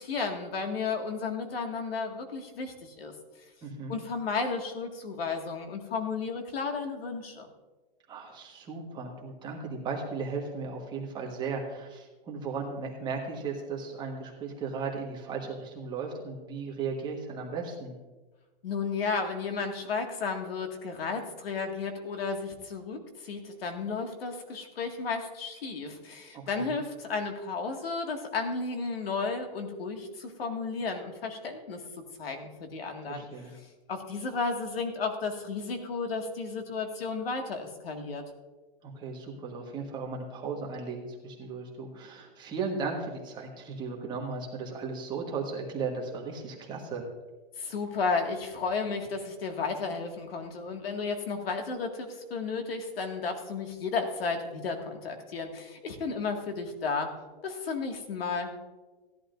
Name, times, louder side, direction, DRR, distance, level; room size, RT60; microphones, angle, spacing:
voice 1, 0.0-3.1 3.9-7.5 18.6-31.8 32.2-33.3 33.9-38.2 47.6-57.1 57.4-58.5, left 4 dB, 80° left, 4 dB, 2.1 m, -33 dB
voice 2, 3.6-4.0 8.1-17.9 26.3-26.8 33.1-33.5 38.8-47.1, right 4 dB, 15° right, -1 dB, 1.4 m, -36 dB
16.5 x 11.0 x 2.6 m, 1.2 s
hypercardioid pair, 160°, 29 cm